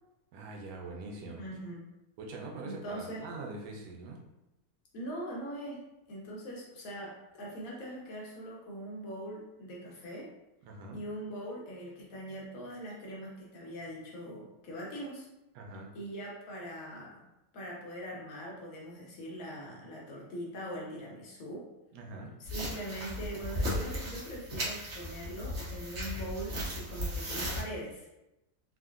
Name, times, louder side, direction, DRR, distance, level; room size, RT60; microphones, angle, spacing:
voice 1, 0.3-1.4 2.2-4.2 10.6-11.0 15.5-15.9 21.9-22.3, right 3 dB, 80° right, 0 dB, 1.2 m, -43 dB
voice 2, 1.4-1.9 2.6-3.3 4.9-5.8 6.1-10.3 10.9-15.3 15.9-17.3 17.5-21.7 22.4-28.1, equal, 65° left, -3 dB, 1.0 m, -42 dB
sound 1, 22.5-27.6, equal, 55° right, 0.9 m, -36 dB
3.6 x 2.1 x 2.4 m, 0.93 s
omnidirectional pair, 1.7 m